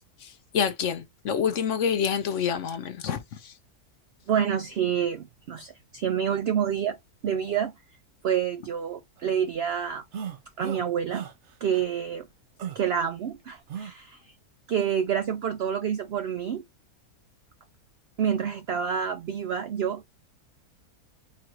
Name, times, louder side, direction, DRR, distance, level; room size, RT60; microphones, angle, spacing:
voice 1, 0.5-3.2 3.4-3.5, left 7 dB, 65° left, 0.9 m, -27 dB
voice 2, 4.3-7.0 7.2-7.7 8.2-10.0 10.6-11.2 11.6-12.3 12.7-14.3 14.7-16.6 18.2-20.1, right 8 dB, 80° right, 0.5 m, -28 dB
sound 1, 10.1-10.8 11.1-11.3 11.7-11.8 12.6-12.8 13.7-13.9, right 8 dB, 55° right, 1.0 m, -35 dB
3.9 x 2.6 x 4.5 m
omnidirectional pair, 1.6 m